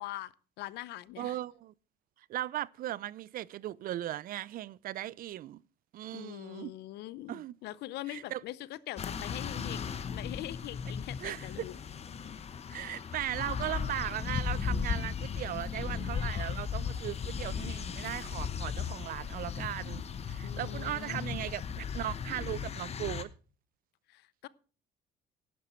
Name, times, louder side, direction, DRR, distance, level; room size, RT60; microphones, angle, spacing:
voice 1, 0.0-1.4 6.1-11.7 20.4-21.3 24.1-24.5, left 15 dB, 80° left, 0.7 m, -43 dB
voice 2, 1.2-1.7 2.2-5.6 5.9-6.7 7.3-7.6 8.1-8.4 11.2-11.7 12.7-23.3, right 13 dB, 60° right, 0.5 m, -38 dB
sound 1, 9.0-23.2, left 6 dB, 40° left, 1.0 m, -36 dB
11.5 x 11.0 x 4.4 m
cardioid pair, 110°, 17 cm